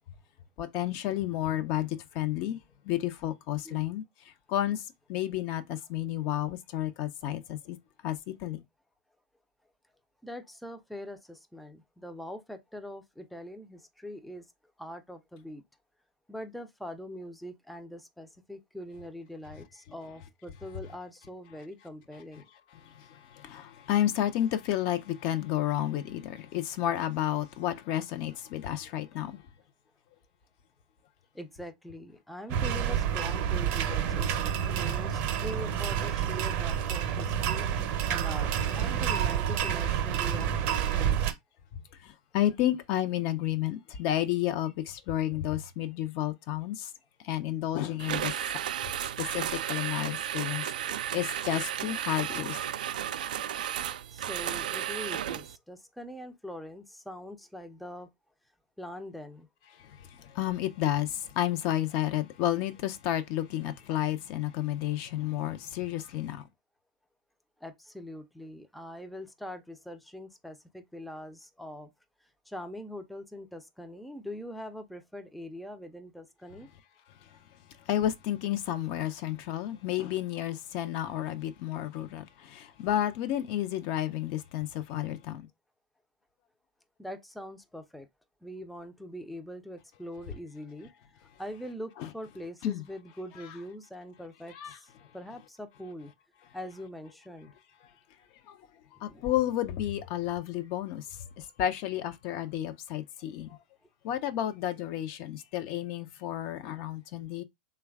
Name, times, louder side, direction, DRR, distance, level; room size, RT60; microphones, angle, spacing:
voice 1, 0.6-2.6 2.8-4.0 4.5-7.8 8.0-8.6 22.7-29.4 42.0-46.9 47.2-48.3 49.0-52.7 59.7-66.5 77.2-77.4 77.8-85.5 92.0-92.1 92.6-92.8 93.4-93.5 94.5-94.8 98.5-98.6 99.0-103.6 104.0-107.4, left 12 dB, 50° left, 0.5 m, -31 dB
voice 2, 10.2-14.4 14.8-15.6 16.3-22.4 31.3-38.5 38.7-41.2 54.1-58.1 58.8-59.5 67.6-71.9 72.5-76.7 87.0-88.1 88.4-90.9 91.4-94.9 95.1-96.1 96.5-97.5 99.0-99.3 103.3-103.4, equal, ahead, 0.5 m, -43 dB
sound 1, 32.5-41.3, right 9 dB, 45° right, 0.7 m, -29 dB
sound 2, 48.0-55.6, right 10 dB, 70° right, 0.3 m, -33 dB
3.1 x 2.3 x 3.4 m
hypercardioid pair, 110°, 5 cm